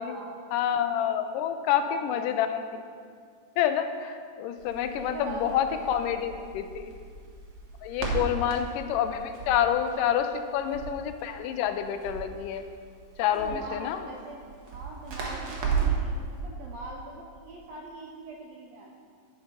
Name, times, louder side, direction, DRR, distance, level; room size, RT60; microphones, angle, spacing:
voice 1, 0.0-0.6 1.8-2.2 5.0-6.3 7.9-8.5 8.9-9.0 9.3-9.5 13.2-19.1, right 2 dB, 75° right, -1 dB, 1.6 m, -42 dB
voice 2, 0.5-2.8 3.6-6.9 7.8-12.6 13.2-14.0, left 9 dB, 85° left, 8 dB, 2.1 m, -28 dB
Crackle, 4.6-16.1, right 6 dB, 60° right, 1.8 m, -35 dB
10.5 x 4.9 x 5.1 m, 2.1 s
omnidirectional pair, 3.8 m